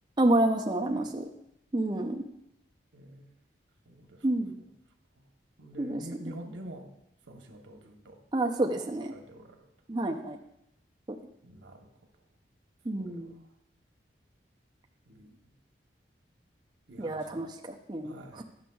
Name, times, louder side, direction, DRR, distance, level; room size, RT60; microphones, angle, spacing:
voice 1, 0.2-1.2 1.7-2.2 4.2-4.6 5.8-6.0 8.3-9.1 9.9-10.4 12.9-13.4 17.0-18.4, right 1 dB, 25° right, 1 dB, 0.4 m, -29 dB
voice 2, 2.9-3.3 3.9-4.2 5.2-5.3 5.6-6.9 7.3-8.2 9.1-9.7 11.4-11.9 13.0-13.4 15.1-15.5 16.9-17.5 18.0-18.4, right 1 dB, 90° right, 3 dB, 0.9 m, -47 dB
10.5 x 6.1 x 2.3 m, 0.81 s
head